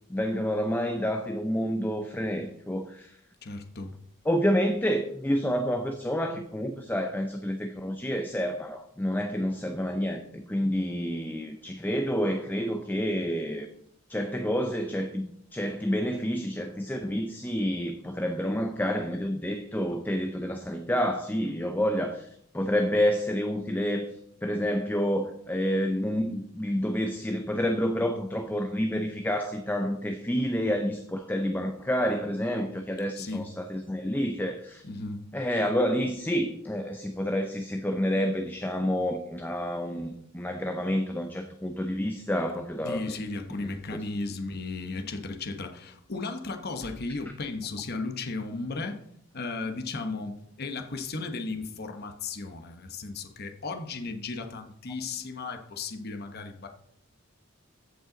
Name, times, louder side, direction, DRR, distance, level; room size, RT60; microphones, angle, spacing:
voice 1, 0.1-3.2 4.3-13.7 14.1-24.1 24.4-34.8 35.3-43.1 43.6-43.7, equal, 10° left, 5 dB, 0.6 m, -29 dB
voice 2, 3.4-3.9 33.1-33.5 34.8-35.2 42.8-49.0 49.3-56.7, left 3 dB, 50° left, 6 dB, 1.0 m, -35 dB
14.5 x 5.5 x 3.9 m, 0.71 s
head